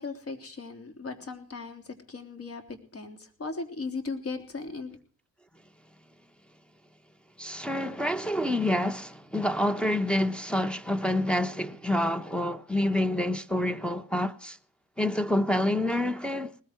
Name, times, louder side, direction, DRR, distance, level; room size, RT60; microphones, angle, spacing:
voice 1, 0.0-1.8 2.1-5.0, left 4 dB, 50° left, 3.4 m, -37 dB
voice 2, 7.4-14.6 15.0-16.6, left 1 dB, 5° left, 1.2 m, -27 dB
19.5 x 14.5 x 4.6 m
cardioid pair, 90°, 30 cm